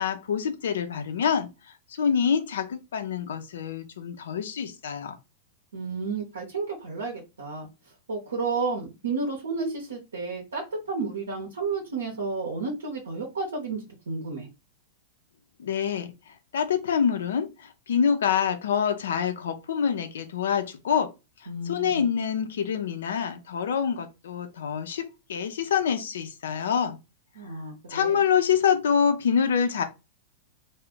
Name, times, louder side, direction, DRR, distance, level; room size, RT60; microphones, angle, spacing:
voice 1, 0.0-1.5 2.0-5.1 15.6-16.1 16.5-21.1 21.7-27.0 27.9-29.8, left 7 dB, 80° left, 0.5 m, -26 dB
voice 2, 5.7-7.7 8.1-10.6 10.9-14.5 21.5-22.0 27.3-28.2, right 4 dB, 90° right, 0.7 m, -32 dB
2.3 x 2.1 x 3.6 m
hypercardioid pair, 110°, 0 cm